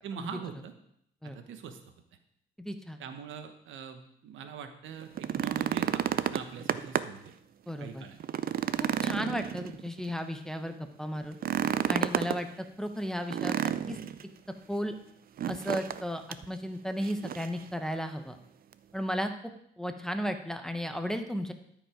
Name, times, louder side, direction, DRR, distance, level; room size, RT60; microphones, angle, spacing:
voice 1, 0.0-0.7 1.2-1.8 3.0-7.3 7.8-8.2, right 7 dB, 75° right, 7 dB, 1.1 m, -43 dB
voice 2, 2.6-3.0 7.7-8.0 8.8-11.4 11.9-13.6 13.9-14.0 14.7-14.9 15.5-18.4 18.9-21.5, equal, 5° left, 6 dB, 0.9 m, -34 dB
sound 1, 5.0-7.3 7.7-7.8 8.2-10.1 11.3-12.4 13.3-14.2 15.4-16.0 16.3-16.4 17.0-17.6 18.7-18.8, right 9 dB, 50° right, 0.5 m, -31 dB
12.5 x 5.3 x 5.0 m, 0.72 s
cardioid pair, 90°, 20 cm